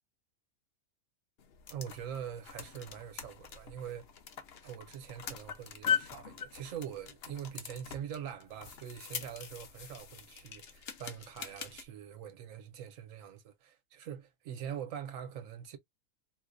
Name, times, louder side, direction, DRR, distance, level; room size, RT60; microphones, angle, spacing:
sound 1, 1.4-11.9, left 7 dB, 55° left, 0.8 m, -41 dB
voice 1, 1.7-4.1 4.6-15.8, right 9 dB, 70° right, 1.0 m, -43 dB
4.3 x 2.1 x 2.5 m
omnidirectional pair, 1.5 m